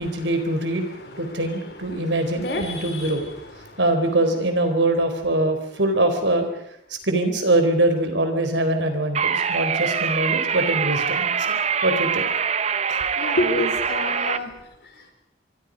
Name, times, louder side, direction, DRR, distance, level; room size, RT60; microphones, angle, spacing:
voice 1, 0.0-0.9 1.2-3.2 3.8-6.5 7.0-11.3 11.8-12.3 12.9-13.0, right 1 dB, 80° right, 7 dB, 4.2 m, -23 dB
voice 2, 0.9-1.4 1.9-3.3 3.6-3.8 13.2-14.5 15.0-15.1, left 1 dB, 60° left, 5 dB, 4.4 m, -29 dB
sound 1, 9.1-14.4, right 7 dB, 35° right, 0.8 m, -24 dB
25.5 x 24.5 x 5.3 m, 0.75 s
head